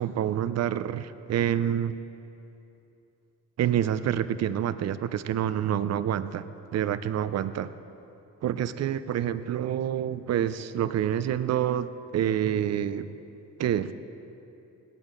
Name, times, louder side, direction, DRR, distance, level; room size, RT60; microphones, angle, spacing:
voice 1, 0.0-2.0 3.6-6.5 6.7-7.7 8.4-13.1 13.6-13.9, right 10 dB, 60° right, 13 dB, 0.6 m, -27 dB
17.5 x 12.5 x 3.9 m, 2.8 s
cardioid pair, 90°, 30 cm